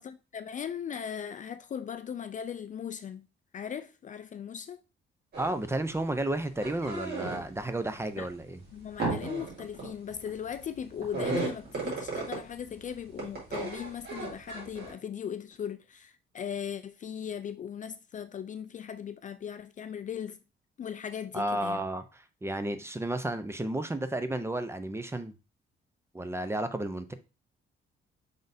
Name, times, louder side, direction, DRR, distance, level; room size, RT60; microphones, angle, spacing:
voice 1, 0.0-3.3 3.5-4.8 8.2-8.3 8.7-20.4 20.8-21.8, left 8 dB, 40° left, 0.4 m, -38 dB
sound 1, 5.3-5.6 5.9-7.6 8.1-12.7 13.1-14.9, right 3 dB, 55° right, 2.5 m, -35 dB
voice 2, 5.4-8.6 21.3-25.3 26.1-27.1, right 1 dB, 15° right, 0.6 m, -32 dB
5.2 x 3.8 x 2.6 m
cardioid pair, 90°, 20 cm